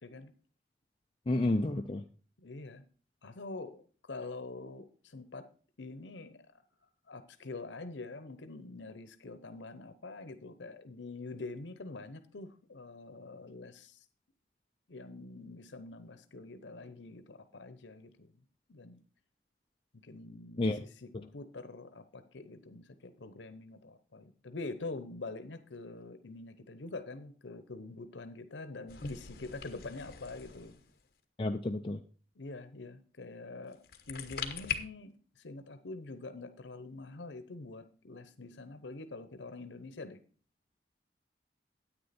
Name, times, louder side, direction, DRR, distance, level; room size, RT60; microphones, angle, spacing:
voice 1, 0.0-0.3 2.4-2.8 3.2-5.5 5.8-6.4 7.1-14.0 14.9-18.3 18.7-19.0 19.9-30.8 32.4-40.2, left 3 dB, 90° left, 11 dB, 0.8 m, -45 dB
voice 2, 1.3-2.0 20.6-20.8 31.4-32.0, left 2 dB, 30° left, 4 dB, 0.5 m, -30 dB
sound 1, 28.9-31.1 33.7-34.7, left 7 dB, 55° left, 1.2 m, -41 dB
9.8 x 8.8 x 4.2 m, 0.40 s
head